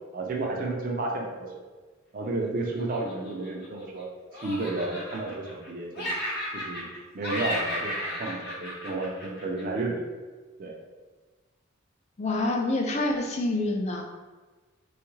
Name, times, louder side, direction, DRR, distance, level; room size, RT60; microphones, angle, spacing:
voice 1, 0.1-1.5 2.1-4.1 4.3-6.2 6.5-6.9 7.1-10.0 10.6-10.7, right 2 dB, 45° right, -1 dB, 0.4 m, -32 dB
Laughter, 2.8-4.0 4.3-5.7 5.9-7.0 7.2-9.8, equal, 55° left, 0.9 m, -34 dB
voice 2, 12.2-14.0, left 2 dB, 35° left, 2 dB, 0.4 m, -27 dB
3.3 x 2.3 x 3.1 m, 1.3 s
head